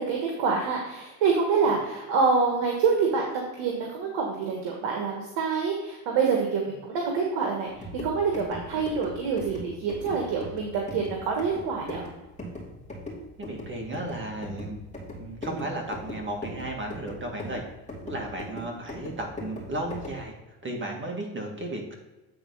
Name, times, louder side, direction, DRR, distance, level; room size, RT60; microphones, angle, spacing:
voice 1, 0.0-7.7 8.0-12.0, right 5 dB, 70° right, 0 dB, 1.6 m, -26 dB
sound 1, 7.7-20.3, left 1 dB, 15° left, 2.4 m, -40 dB
voice 2, 13.4-14.8 15.2-17.6 18.0-22.0, right 1 dB, 25° right, 1 dB, 2.0 m, -34 dB
8.8 x 4.1 x 5.4 m, 1.1 s
cardioid pair, 110°, 45 cm